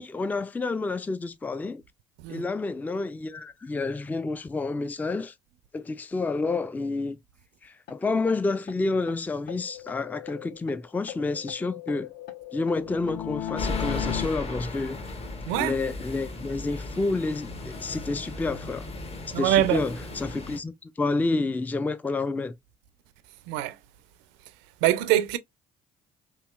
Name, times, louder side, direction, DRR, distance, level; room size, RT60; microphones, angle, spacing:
voice 1, 0.0-1.8 2.3-5.3 5.7-7.2 7.6-12.1 12.5-15.0 15.5-18.9 19.4-22.6, left 3 dB, 10° left, 0.3 m, -29 dB
sound 1, 7.9-8.0 8.3-8.4 8.7-8.8 9.1-9.2 9.5-10.8 11.1-14.3, left 12 dB, 55° left, 0.7 m, -36 dB
sound 2, 13.6-20.6, left 2 dB, 30° left, 0.9 m, -36 dB
voice 2, 15.5-15.8 19.3-19.9 23.4-23.8 24.5-24.6 24.8-25.4, right 13 dB, 70° right, 0.4 m, -24 dB
3.0 x 2.7 x 2.3 m
hypercardioid pair, 55°, 19 cm